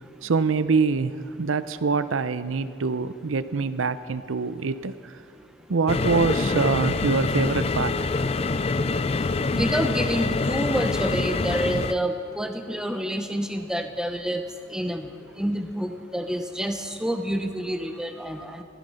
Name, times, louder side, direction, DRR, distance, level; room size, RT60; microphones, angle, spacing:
voice 1, 0.2-5.1 5.7-8.1, right 4 dB, 85° right, 13 dB, 0.6 m, -25 dB
sound 1, 5.9-11.9, left 3 dB, 30° left, 0.4 m, -25 dB
voice 2, 9.5-14.4 14.7-15.1 15.4-18.6, equal, 5° right, 6 dB, 0.8 m, -28 dB
15.5 x 14.5 x 5.6 m, 2.3 s
head